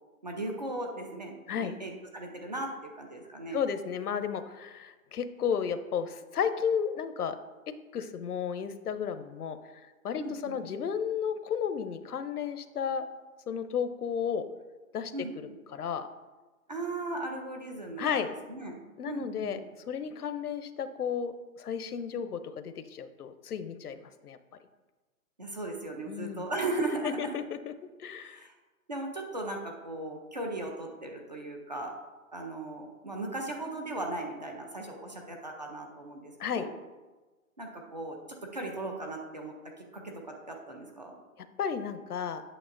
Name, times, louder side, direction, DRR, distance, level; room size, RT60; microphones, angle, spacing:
voice 1, 0.2-3.6 10.2-10.6 15.1-15.5 16.7-18.2 18.5-19.6 25.4-27.4 28.2-28.5 28.9-31.9 32.3-36.7 37.6-41.2, right 2 dB, 30° right, 2 dB, 0.6 m, -37 dB
voice 2, 3.5-7.4 7.9-9.6 10.0-13.0 13.5-14.4 14.9-15.1 15.7-16.1 18.0-18.3 19.0-19.6 19.9-24.4 26.1-26.5 27.0-27.7 28.0-28.4 36.4-36.7 41.6-42.4, left 7 dB, 80° left, 11 dB, 0.7 m, -33 dB
8.8 x 6.6 x 2.5 m, 1.2 s
hypercardioid pair, 170°, 45 cm